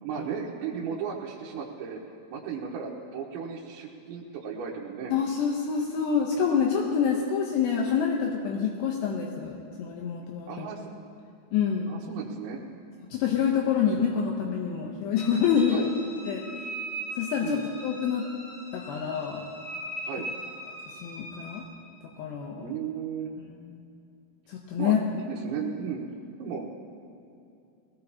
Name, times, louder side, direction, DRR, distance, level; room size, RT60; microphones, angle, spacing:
voice 1, 0.0-2.0 2.3-5.1 10.5-10.9 11.9-12.6 13.8-13.9 15.7-15.9 17.4-17.7 20.0-20.3 22.6-23.3 24.8-26.1 26.4-26.7, right 7 dB, 85° right, -4 dB, 3.5 m, -35 dB
voice 2, 5.1-10.7 11.5-11.9 13.1-15.8 16.3-16.4 17.2-18.3 18.7-19.5 21.0-21.6 22.2-22.7 23.4-23.8 24.5-25.0, left 7 dB, 75° left, 0 dB, 2.9 m, -27 dB
sound 1, 15.2-21.6, right 1 dB, 50° left, 5.2 m, -39 dB
21.0 x 18.0 x 2.8 m, 2.6 s
omnidirectional pair, 5.2 m